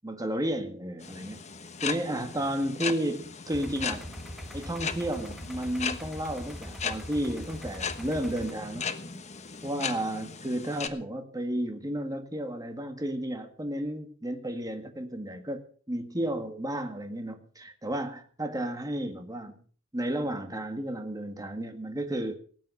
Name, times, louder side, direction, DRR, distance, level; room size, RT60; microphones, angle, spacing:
voice 1, 0.0-1.4 1.8-4.1 4.5-8.9 9.6-19.5 19.9-22.3, right 1 dB, 20° right, 1.8 m, -32 dB
sound 1, 1.0-10.9, left 6 dB, 35° left, 1.2 m, -37 dB
sound 2, 3.5-8.5, equal, ahead, 1.2 m, -42 dB
18.5 x 9.3 x 6.7 m
head